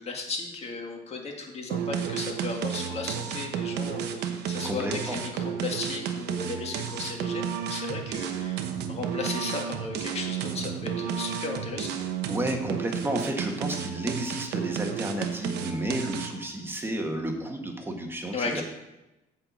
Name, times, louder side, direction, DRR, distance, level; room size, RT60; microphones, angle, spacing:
voice 1, 0.0-11.9 18.3-18.6, left 4 dB, 40° left, 1 dB, 2.1 m, -35 dB
sound 1, 1.7-16.5, right 8 dB, 80° right, 1.0 m, -32 dB
voice 2, 4.6-5.2 12.3-18.6, right 1 dB, 15° right, 3 dB, 1.6 m, -31 dB
8.4 x 4.6 x 7.3 m, 0.97 s
cardioid pair, 110°, 17 cm